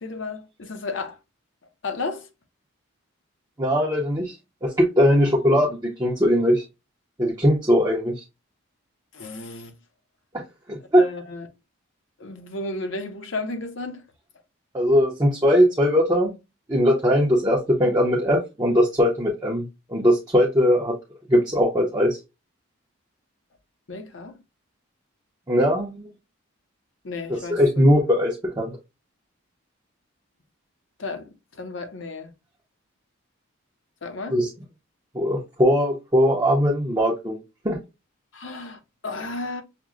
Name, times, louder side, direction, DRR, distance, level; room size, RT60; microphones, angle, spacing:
voice 1, 0.0-1.2 1.8-2.3 9.1-9.7 11.0-11.5 12.2-14.0 23.9-24.4 27.0-27.8 31.0-32.3 34.0-34.4 38.3-39.6, left 3 dB, 60° left, 0.6 m, -33 dB
voice 2, 3.6-4.3 4.6-6.6 7.2-8.1 10.7-11.0 14.7-16.4 16.7-20.9 21.3-22.2 25.5-26.0 27.5-28.7 34.3-34.5 35.1-37.4 37.6-37.8, equal, 20° right, 0.5 m, -20 dB
5.8 x 2.0 x 2.4 m
head